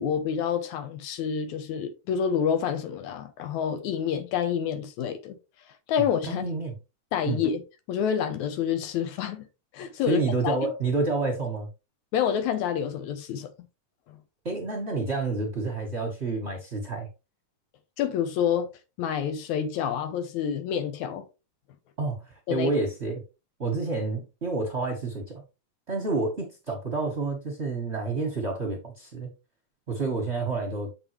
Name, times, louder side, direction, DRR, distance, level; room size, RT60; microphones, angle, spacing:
voice 1, 0.0-5.4 5.9-6.5 7.1-7.6 7.9-9.5 9.7-10.6 12.1-13.5 18.0-18.7 19.0-21.3 22.5-22.7, left 8 dB, 90° left, 2.2 m, -28 dB
voice 2, 6.3-6.7 7.3-7.4 10.1-11.7 14.4-17.1 22.0-23.2 23.6-25.4 25.9-29.3 29.9-30.9, right 3 dB, 40° right, 1.0 m, -29 dB
7.2 x 5.3 x 3.2 m
omnidirectional pair, 3.3 m